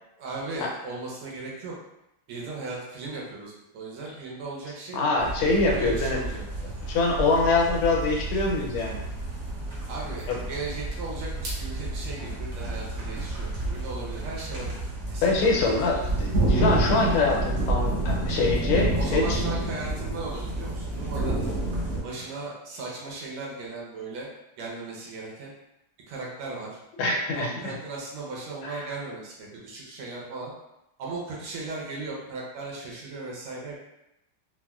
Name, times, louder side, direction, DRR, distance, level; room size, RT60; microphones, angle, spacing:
voice 1, 0.2-1.7 2.3-5.0 5.7-6.7 9.9-14.8 15.1-16.1 18.8-21.4 22.0-24.3 24.6-25.5 26.1-26.8 27.3-30.5 31.0-33.8, right 3 dB, 90° right, -3 dB, 1.7 m, -37 dB
voice 2, 4.9-6.2 6.9-9.0 10.3-10.4 15.2-19.4 27.0-27.8 28.6-28.9, left 3 dB, 85° left, 0 dB, 1.5 m, -24 dB
sound 1, 5.2-22.0, right 2 dB, 70° right, 0.8 m, -29 dB
4.2 x 2.1 x 2.3 m, 0.88 s
omnidirectional pair, 2.3 m